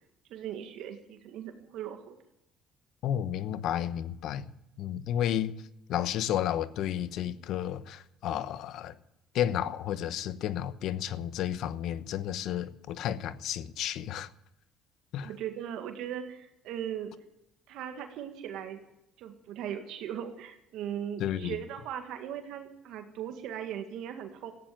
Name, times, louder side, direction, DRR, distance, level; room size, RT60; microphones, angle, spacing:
voice 1, 0.3-2.2 15.2-17.1 17.7-18.8 19.2-24.5, right 9 dB, 75° right, 1.9 m, -38 dB
voice 2, 3.0-4.5 4.8-5.6 5.9-8.9 9.3-14.3 15.1-15.3 21.2-21.6, left 10 dB, 70° left, 1.0 m, -32 dB
15.5 x 10.5 x 8.9 m
supercardioid pair, 90°, 0 cm